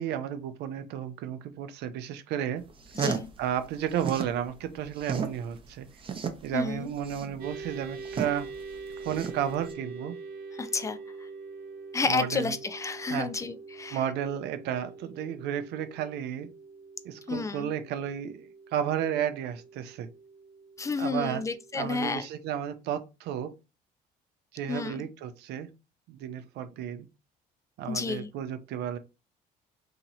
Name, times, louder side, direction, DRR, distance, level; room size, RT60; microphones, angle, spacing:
voice 1, 0.0-2.6 3.4-5.9 6.4-8.5 9.0-10.1 12.0-12.6 13.1-13.3 13.9-16.5 17.0-20.1 21.0-21.5 21.7-23.5 24.5-25.7 26.1-27.1 27.8-29.0, right 9 dB, 80° right, 0.5 m, -32 dB
sound 1, 2.7-4.4 4.7-9.7, right 6 dB, 30° right, 0.6 m, -34 dB
sound 2, 7.4-22.1, right 4 dB, 60° right, 1.0 m, -44 dB
voice 2, 10.5-11.0 11.9-14.0 17.3-17.7 20.8-22.3 24.7-25.0 27.9-28.3, left 4 dB, 20° left, 0.4 m, -30 dB
2.9 x 2.9 x 3.9 m
cardioid pair, 110°, 17 cm